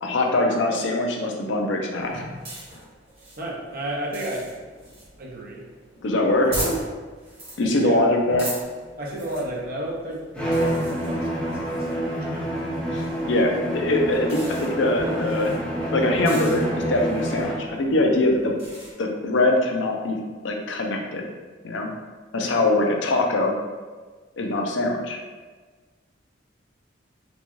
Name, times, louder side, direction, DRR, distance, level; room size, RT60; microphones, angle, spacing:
voice 1, 0.0-2.2 6.0-6.6 7.6-8.5 12.9-15.5 15.9-18.5 19.0-20.2 20.4-21.3 21.6-21.9 22.3-23.5 24.4-25.2, left 2 dB, 65° left, 1 dB, 0.5 m, -22 dB
sound 1, 2.0-18.9, right 1 dB, 30° right, 1.3 m, -39 dB
voice 2, 3.4-4.5 4.9-5.7 6.4-6.7 7.6-8.1 9.0-12.5 13.0-13.1, right 1 dB, 50° right, -3 dB, 0.7 m, -33 dB
Bowed string instrument, 10.3-17.8, right 1 dB, 5° left, 0.8 m, -27 dB
4.0 x 2.3 x 3.0 m, 1.4 s
head